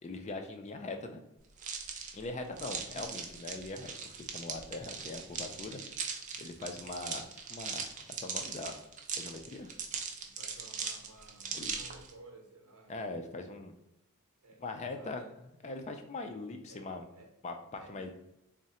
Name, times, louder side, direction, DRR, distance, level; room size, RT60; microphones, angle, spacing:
voice 1, 0.0-1.2 2.1-5.8 6.4-7.8 8.2-8.8 9.1-9.7 11.5-11.7 12.9-13.7 14.6-15.2 15.6-17.1 17.4-17.5 17.9-18.1, left 3 dB, 30° left, 5 dB, 0.4 m, -41 dB
sound 1, 1.6-12.1, right 6 dB, 35° right, 0.4 m, -40 dB
voice 2, 2.4-3.2 6.2-6.6 10.2-13.2 14.4-14.6 14.9-15.3 16.7-17.3 17.7-18.1, right 2 dB, 75° right, 2 dB, 0.9 m, -56 dB
3.6 x 2.1 x 4.1 m, 0.84 s
head